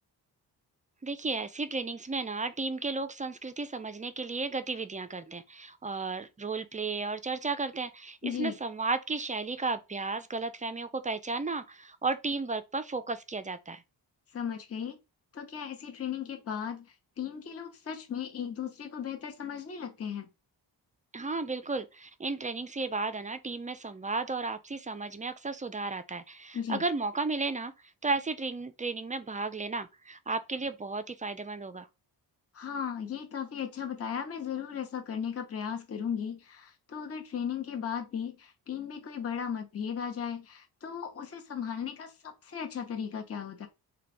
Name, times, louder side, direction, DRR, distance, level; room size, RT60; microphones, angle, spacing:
voice 1, 1.0-13.8 21.1-27.7 28.0-31.9, right 3 dB, 20° right, 0.3 m, -34 dB
voice 2, 8.2-8.6 14.3-15.0 15.3-20.3 26.5-26.8 32.5-43.7, left 8 dB, 35° left, 0.8 m, -36 dB
3.2 x 2.3 x 4.1 m
cardioid pair, 85°, 42 cm